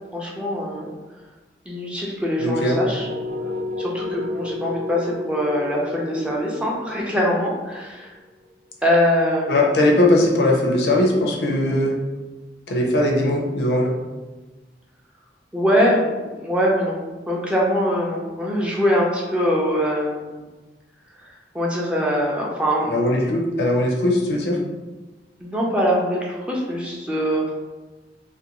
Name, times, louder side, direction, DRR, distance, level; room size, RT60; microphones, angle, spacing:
voice 1, 0.1-0.9 1.7-3.1 3.8-8.1 8.8-9.5 15.5-17.0 17.3-20.4 21.5-22.9 25.4-27.5, equal, 5° right, -3 dB, 0.4 m, -22 dB
voice 2, 2.4-2.8 9.5-12.0 12.7-14.0 22.9-24.6, left 1 dB, 65° left, 0 dB, 0.5 m, -19 dB
sound 1, 2.6-8.5, left 2 dB, 80° right, 0.8 m, -32 dB
2.5 x 2.2 x 2.8 m, 1.2 s
head